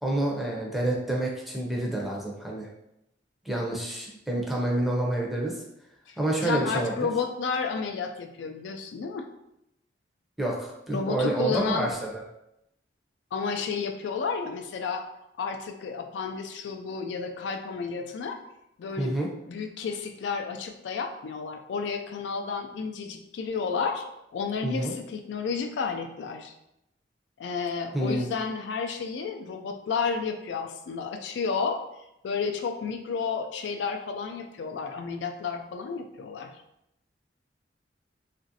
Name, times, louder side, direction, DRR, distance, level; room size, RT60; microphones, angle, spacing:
voice 1, 0.0-2.7 3.5-5.6 6.2-7.1 10.4-12.2 19.0-19.3 24.6-24.9 27.9-28.2, right 1 dB, ahead, -3 dB, 0.5 m, -28 dB
voice 2, 6.1-9.3 10.9-11.9 13.3-15.0 15.4-18.4 18.8-19.2 19.5-24.0 24.3-26.5 27.4-31.8 32.2-36.5, left 5 dB, 75° left, 4 dB, 0.3 m, -31 dB
2.9 x 2.5 x 2.7 m, 0.83 s
head